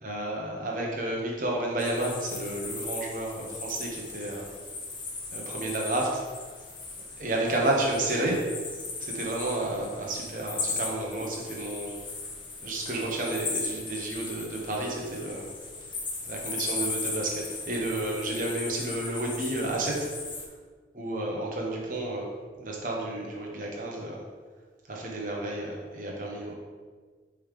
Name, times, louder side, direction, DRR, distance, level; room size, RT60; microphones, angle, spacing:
voice 1, 0.0-4.5 5.3-6.2 7.2-8.4 9.0-11.9 12.6-15.5 16.3-20.1 21.0-22.3 22.6-24.2 24.9-26.5, right 1 dB, 50° right, -2 dB, 1.2 m, -31 dB
sound 1, 1.8-20.5, left 3 dB, 25° left, 0.7 m, -37 dB
5.5 x 3.6 x 5.0 m, 1.5 s
head